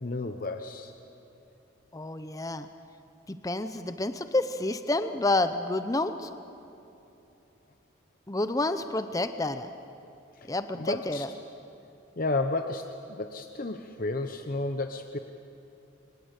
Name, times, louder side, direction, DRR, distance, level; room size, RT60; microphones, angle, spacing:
voice 1, 0.0-0.9 10.8-11.2 12.2-15.2, left 2 dB, 45° left, 6 dB, 0.9 m, -32 dB
voice 2, 1.9-2.7 3.3-6.3 8.3-9.7 10.5-11.3, left 2 dB, 15° left, 10 dB, 0.7 m, -29 dB
25.0 x 19.5 x 8.2 m, 3.0 s
head